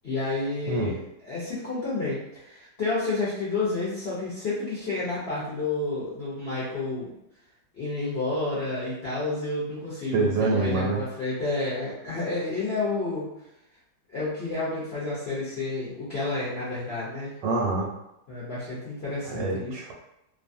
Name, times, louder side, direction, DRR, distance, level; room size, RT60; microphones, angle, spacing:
voice 1, 0.0-7.1 7.7-13.3 14.1-17.3 18.3-19.8, left 3 dB, 55° left, -10 dB, 0.7 m, -30 dB
voice 2, 10.1-11.0 17.4-17.9 19.2-19.9, right 3 dB, 75° right, -1 dB, 1.3 m, -26 dB
3.0 x 2.3 x 2.6 m, 0.86 s
omnidirectional pair, 2.1 m